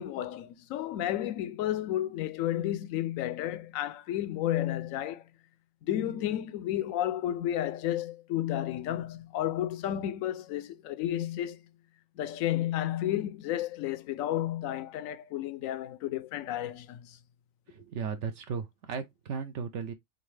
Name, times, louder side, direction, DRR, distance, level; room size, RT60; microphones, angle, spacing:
voice 1, 0.0-5.2 5.8-11.6 12.2-17.2, left 12 dB, 75° left, 1.0 m, -32 dB
voice 2, 17.7-19.9, right 6 dB, 65° right, 0.9 m, -36 dB
3.9 x 3.5 x 3.2 m
omnidirectional pair, 1.4 m